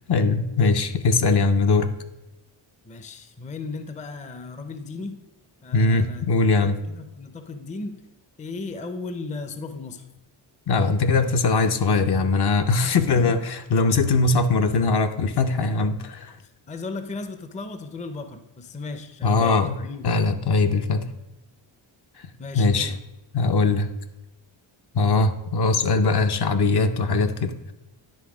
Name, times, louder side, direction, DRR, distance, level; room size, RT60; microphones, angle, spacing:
voice 1, 0.1-1.9 5.7-6.8 10.7-16.3 19.2-19.8 20.0-21.0 22.5-22.9 23.3-23.9 24.9-27.7, left 3 dB, 55° left, 7 dB, 0.6 m, -21 dB
voice 2, 2.8-5.2 5.6-6.3 6.6-8.0 8.4-10.1 12.8-13.4 16.4-20.1 22.4-23.0, left 3 dB, 15° left, 9 dB, 0.4 m, -36 dB
10.0 x 3.3 x 4.8 m, 0.97 s
wide cardioid pair, 100°, 48 cm